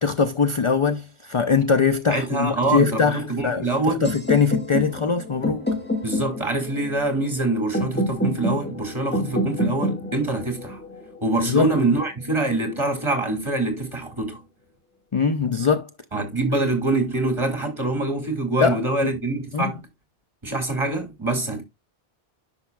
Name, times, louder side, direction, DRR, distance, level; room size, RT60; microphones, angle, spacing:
voice 1, 0.0-5.7 11.5-11.7 15.1-15.9 18.6-18.8 19.5-19.7, left 5 dB, 40° left, 0.5 m, -22 dB
voice 2, 2.1-4.0 6.0-10.8 11.2-14.4 16.1-19.8 20.4-21.6, right 2 dB, 30° right, 2.2 m, -24 dB
sound 1, 4.0-12.0, equal, 10° left, 1.7 m, -28 dB
10.5 x 5.9 x 2.3 m
omnidirectional pair, 1.0 m